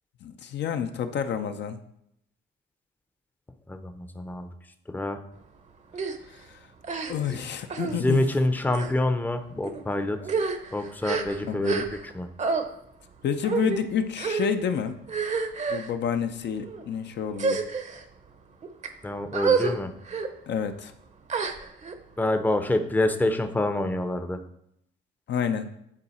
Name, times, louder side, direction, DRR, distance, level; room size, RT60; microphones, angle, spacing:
voice 1, 0.2-1.8 6.3-6.7 7.1-8.2 11.4-11.9 13.2-15.0 15.7-17.6 20.5-20.9 25.3-25.7, left 7 dB, 60° left, 7 dB, 0.6 m, -29 dB
voice 2, 3.7-4.5 4.9-5.2 7.3-7.4 7.9-10.2 10.7-11.8 12.1-12.3 19.0-19.9 22.2-24.4, left 1 dB, 10° left, 7 dB, 0.6 m, -26 dB
sound 1, 5.9-6.2 6.8-7.4 7.7-8.0 8.7-8.9 9.6-9.8 10.2-12.1 12.4-12.6 13.4-13.8 14.2-14.5 15.1-15.9 16.6-16.8 17.3-18.0 18.6-18.9 19.3-19.7 20.1-20.3 21.3-21.9, right 5 dB, 35° right, 0.7 m, -28 dB
9.8 x 3.8 x 4.3 m, 0.77 s
cardioid pair, 90°, 20 cm